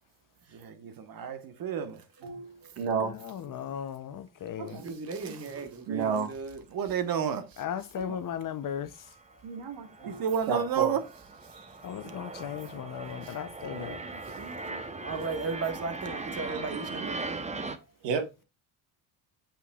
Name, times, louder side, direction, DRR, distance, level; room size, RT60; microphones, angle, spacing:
voice 1, 0.5-2.0 6.7-7.4 10.1-11.0, right 8 dB, 55° right, 1.3 m, -30 dB
voice 2, 2.2-3.1 4.6-4.9 5.5-6.3 8.0-8.2 9.4-11.0 11.6-11.7 12.4-12.5 12.7-12.8 13.7-14.8 15.1-15.2 16.9-17.2 17.5-17.6 18.0-18.2, right 5 dB, 80° right, 1.8 m, -34 dB
voice 3, 3.3-4.8 7.6-8.9 11.8-14.0, left 9 dB, 50° left, 0.8 m, -36 dB
voice 4, 4.8-6.6 9.3-9.4 12.0-12.1 15.0-17.4, right 4 dB, 35° right, 1.6 m, -36 dB
sound 1, 5.7-5.8 6.4-6.6 6.9-7.0 7.7-7.8 8.0-8.3 8.7-17.8, right 3 dB, 15° right, 0.9 m, -40 dB
8.2 x 5.9 x 2.4 m
cardioid pair, 85°, 42 cm